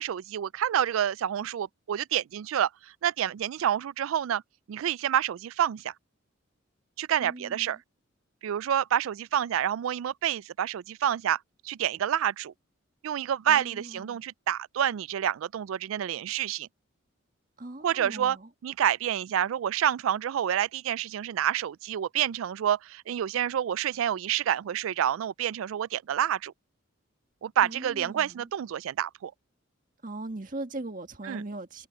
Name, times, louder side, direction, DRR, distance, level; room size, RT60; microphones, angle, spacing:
voice 1, 0.0-4.4 4.7-5.9 7.0-7.8 8.4-11.4 11.6-12.5 13.0-16.7 17.8-18.4 18.6-26.5 27.4-29.3 31.3-31.4, right 10 dB, 85° right, 0.3 m, -28 dB
voice 2, 7.2-7.8 13.5-14.2 17.6-18.5 27.6-28.5 30.0-31.9, right 2 dB, 40° right, 1.7 m, -40 dB
head